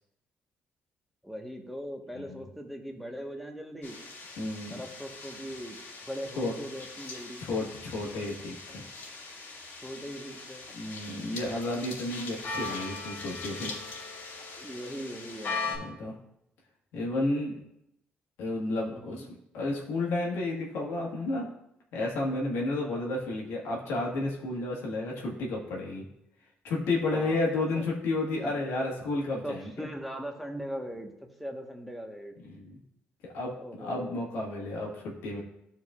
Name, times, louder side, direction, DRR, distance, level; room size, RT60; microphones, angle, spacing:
voice 1, 1.2-4.0 4.7-5.8 6.1-7.4 9.8-10.7 14.6-15.8 18.9-19.3 22.7-23.0 27.1-27.4 27.7-27.8 28.4-28.5 29.4-31.1 31.4-32.3 33.6-34.2, equal, ahead, 2 dB, 1.3 m, -40 dB
voice 2, 2.1-2.5 4.4-4.8 6.4-6.5 7.4-8.8 10.7-13.7 15.7-16.1 16.9-17.6 18.4-21.5 21.9-26.0 26.6-29.7 32.4-32.8 33.3-35.4, left 2 dB, 90° left, -2 dB, 1.7 m, -32 dB
sound 1, 3.8-15.8, left 4 dB, 65° left, 2.2 m, -40 dB
12.5 x 4.6 x 2.4 m, 0.81 s
cardioid pair, 80°, 4 cm